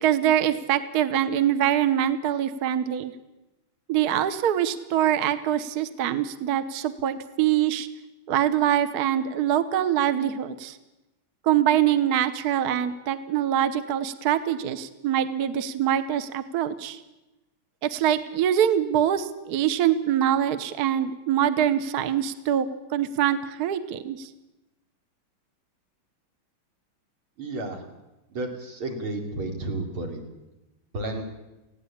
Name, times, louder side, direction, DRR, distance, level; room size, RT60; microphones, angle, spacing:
voice 1, 0.0-3.1 3.9-7.9 8.3-10.8 11.4-17.0 17.8-22.7 22.9-24.3, right 10 dB, 55° right, 12 dB, 1.3 m, -24 dB
voice 2, 27.4-27.8 28.3-30.2 30.9-31.3, right 2 dB, 85° right, 3 dB, 3.7 m, -32 dB
19.5 x 16.0 x 8.5 m, 1.0 s
omnidirectional pair, 2.3 m